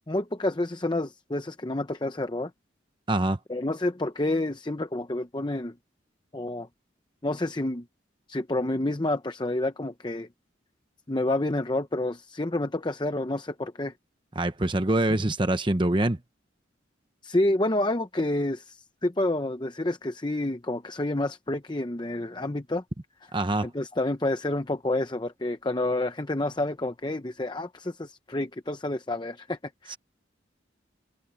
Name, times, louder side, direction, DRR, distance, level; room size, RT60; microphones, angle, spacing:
voice 1, 0.1-2.5 3.5-5.7 6.3-6.7 7.2-7.8 8.3-10.3 11.1-13.9 17.2-22.8 23.6-29.6 29.8-30.0, left 1 dB, 25° left, 0.8 m, -29 dB
voice 2, 3.1-3.4 14.3-16.2 23.3-23.7 29.9-30.0, right 1 dB, 25° right, 0.9 m, -24 dB
open air
head